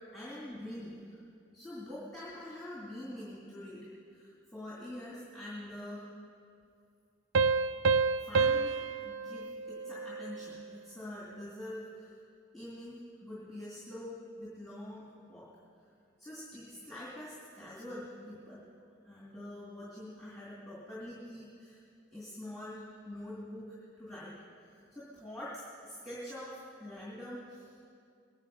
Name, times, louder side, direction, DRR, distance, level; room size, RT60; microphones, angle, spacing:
voice 1, 0.1-1.2 1.5-6.2 8.2-12.2 12.5-15.5 16.2-18.6 19.0-21.8 22.1-24.3 24.6-27.8, left 1 dB, ahead, -8 dB, 2.4 m, -45 dB
Piano, 7.4-10.6, right 4 dB, 80° right, 0.4 m, -29 dB
21.0 x 9.7 x 5.5 m, 2.4 s
head